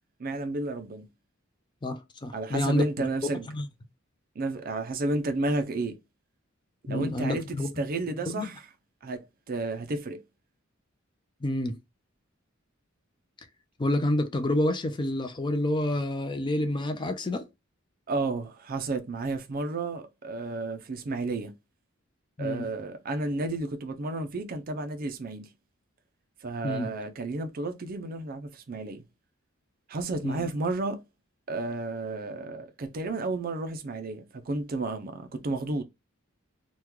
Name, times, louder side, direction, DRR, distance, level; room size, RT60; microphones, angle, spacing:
voice 1, 0.2-1.0 2.3-3.5 4.4-6.0 6.8-8.6 9.0-10.2 18.1-21.5 22.4-25.5 26.4-29.0 29.9-31.0 31.5-35.8, right 2 dB, 45° right, 0.5 m, -32 dB
voice 2, 1.8-2.8 3.5-3.7 6.9-7.7 8.3-8.5 11.4-11.8 13.8-17.4 22.4-22.7 26.6-26.9 30.2-30.4, left 1 dB, 25° left, 0.4 m, -28 dB
3.0 x 2.2 x 3.5 m
head